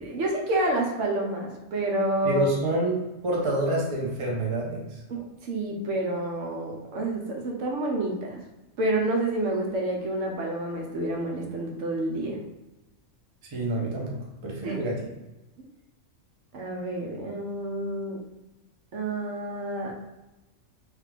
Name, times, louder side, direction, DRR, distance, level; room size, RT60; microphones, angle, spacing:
voice 1, 0.0-2.5 5.1-8.4 8.8-12.4 14.6-14.8 16.5-18.2 18.9-20.1, right 1 dB, 70° right, 0 dB, 0.9 m, -29 dB
voice 2, 2.2-5.0 13.5-14.2 14.4-15.1, right 1 dB, 35° right, -2 dB, 0.5 m, -28 dB
3.3 x 2.3 x 3.3 m, 1.0 s
omnidirectional pair, 1.4 m